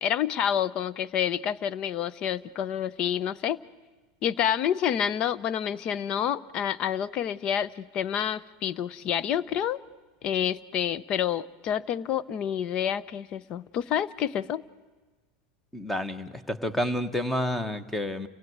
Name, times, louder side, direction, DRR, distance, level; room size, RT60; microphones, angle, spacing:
voice 1, 0.0-3.6 4.2-9.8 10.2-14.6, left 9 dB, 35° left, 19 dB, 0.7 m, -28 dB
voice 2, 15.7-18.3, left 1 dB, 5° left, 13 dB, 1.2 m, -29 dB
29.5 x 16.5 x 9.5 m, 1.3 s
supercardioid pair, 150°, 3 cm